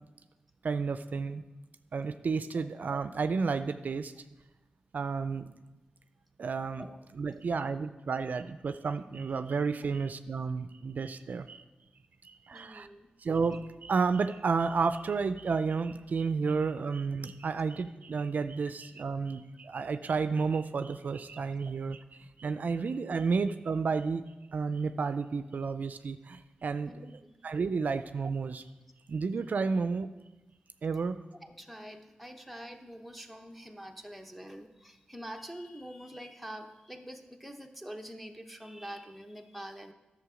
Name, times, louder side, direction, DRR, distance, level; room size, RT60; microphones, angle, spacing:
voice 1, 0.6-1.4 1.9-4.1 4.9-5.5 6.4-6.9 7.1-11.6 12.2-12.9 13.2-24.2 24.5-26.9 27.4-28.6 29.1-30.1 30.8-31.2, right 4 dB, 65° right, 11 dB, 0.4 m, -31 dB
voice 2, 12.5-13.1 26.8-27.4 31.4-39.9, equal, ahead, 4 dB, 0.9 m, -45 dB
11.0 x 6.9 x 4.9 m, 1.1 s
wide cardioid pair, 80°, 3 cm